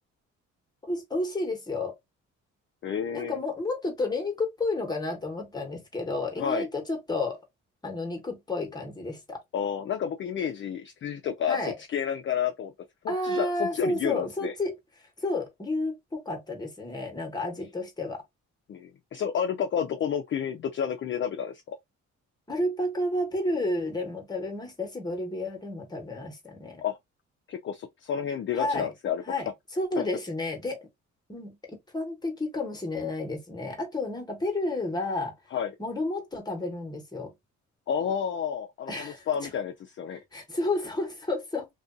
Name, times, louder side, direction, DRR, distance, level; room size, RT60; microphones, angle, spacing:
voice 1, 0.8-2.0 3.1-7.4 7.8-9.4 11.5-11.7 13.1-14.7 15.2-18.2 22.5-26.8 28.5-28.9 29.3-30.9 31.3-35.3 35.8-37.3 38.9-39.3 40.3-41.7, left 2 dB, 15° left, 1.0 m, -31 dB
voice 2, 2.8-3.4 6.4-6.7 9.5-12.7 13.0-14.5 18.7-21.8 26.8-27.0 27.5-29.2 30.0-30.1 35.5-35.7 37.9-40.2, left 8 dB, 40° left, 0.4 m, -30 dB
2.5 x 2.3 x 2.4 m
cardioid pair, 90°, 30 cm